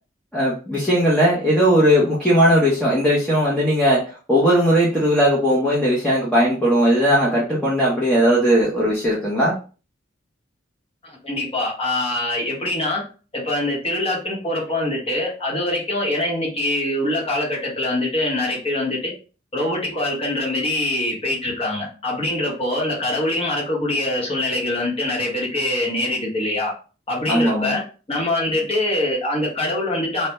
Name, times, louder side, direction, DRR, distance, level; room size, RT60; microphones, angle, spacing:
voice 1, 0.3-4.0 4.3-9.6 27.3-27.7, equal, 5° left, -6 dB, 0.6 m, -18 dB
voice 2, 11.0-13.0 13.3-19.1 19.5-26.7 27.1-27.8 28.1-30.3, left 1 dB, 30° left, -3 dB, 0.9 m, -24 dB
2.1 x 2.1 x 2.8 m, 0.36 s
head